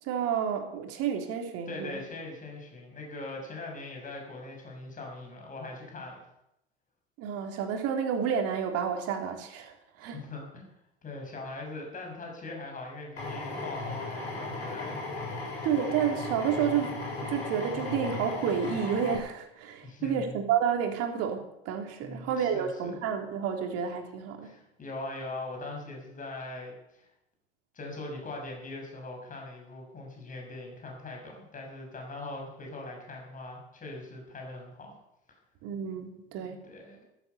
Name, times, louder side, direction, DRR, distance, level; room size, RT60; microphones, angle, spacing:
voice 1, 0.0-2.0 7.2-10.2 15.6-24.5 35.6-36.6, right 8 dB, 50° right, 4 dB, 3.5 m, -30 dB
voice 2, 1.7-6.2 10.0-10.7 11.0-15.0 19.8-20.3 22.0-23.0 24.4-27.1 27.7-35.0 36.6-37.0, left 2 dB, 25° left, 1 dB, 6.8 m, -41 dB
Drill, 13.2-19.2, left 3 dB, 80° left, 6.9 m, -36 dB
14.0 x 13.5 x 7.0 m, 0.82 s
figure-of-eight pair, 80°, 32 cm